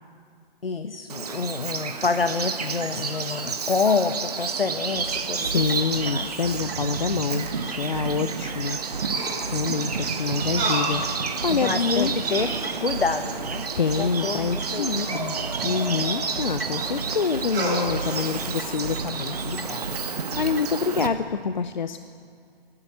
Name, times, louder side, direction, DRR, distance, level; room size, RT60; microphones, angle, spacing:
voice 1, 0.6-5.6 6.0-6.3 11.5-12.5 12.8-13.7 14.0-15.1, left 4 dB, 70° left, 9 dB, 1.1 m, -27 dB
Bird vocalization bird call bird song, 1.1-21.1, right 5 dB, 40° right, 1.4 m, -31 dB
sound 1, 4.9-20.8, right 3 dB, 70° right, 1.4 m, -37 dB
voice 2, 5.4-8.8 9.2-12.1 13.8-15.4 15.6-22.0, left 5 dB, 50° left, 10 dB, 0.7 m, -27 dB
sound 2, 7.2-8.1 9.1-9.6 10.5-10.9 11.5-11.6 12.0-13.4 14.9-16.4 17.4-17.8, right 2 dB, 15° right, 3.6 m, -32 dB
26.0 x 12.0 x 8.5 m, 2.3 s
figure-of-eight pair, 140°, 30 cm